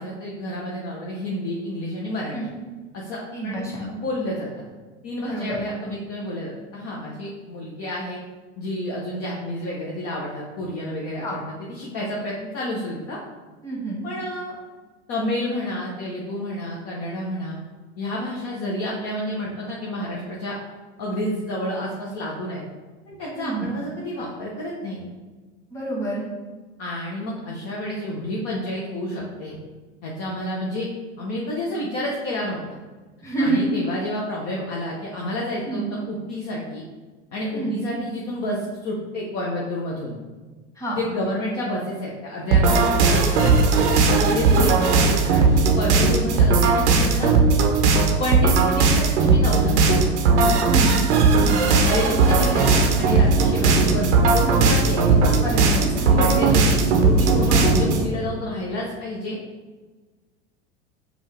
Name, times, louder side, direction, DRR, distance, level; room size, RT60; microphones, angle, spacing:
voice 1, 0.0-2.4 2.9-4.5 5.0-8.2 8.6-13.2 14.0-14.6 15.1-17.6 18.0-20.5 21.0-22.6 23.1-25.1 26.8-29.6 30.0-30.9 31.2-32.6 33.4-36.8 37.3-40.1 40.9-43.6 44.2-47.3 48.2-49.7 50.3-50.6 51.6-55.7 56.1-59.4, left 1 dB, 45° left, -4 dB, 0.8 m, -29 dB
voice 2, 3.3-3.8 5.2-5.6 11.2-11.4 13.6-14.0 23.3-23.7 25.7-26.3 33.2-33.6 35.7-35.9 37.5-37.8 40.8-41.0 44.3-44.7 50.7-51.0 51.4-51.7 55.4-56.6, right 3 dB, 10° left, -5 dB, 1.4 m, -28 dB
Distro Loop, 42.5-58.0, right 4 dB, 85° right, 0.7 m, -18 dB
sound 1, 51.9-58.1, right 2 dB, 70° left, 1.4 m, -29 dB
5.2 x 2.4 x 3.3 m, 1.3 s
hypercardioid pair, 85°, 34 cm